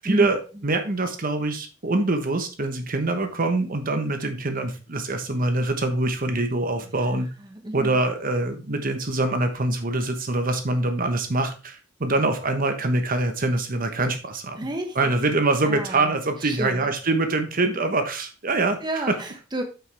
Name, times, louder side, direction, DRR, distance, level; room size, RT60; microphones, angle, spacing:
voice 1, 0.0-7.3 7.7-14.6 14.9-19.2, right 2 dB, 45° right, 6 dB, 1.1 m, -24 dB
voice 2, 7.4-8.0 14.6-15.1 15.6-16.1 16.4-16.9 18.8-19.6, right 1 dB, 20° right, 4 dB, 1.1 m, -31 dB
9.1 x 5.9 x 3.4 m, 0.32 s
head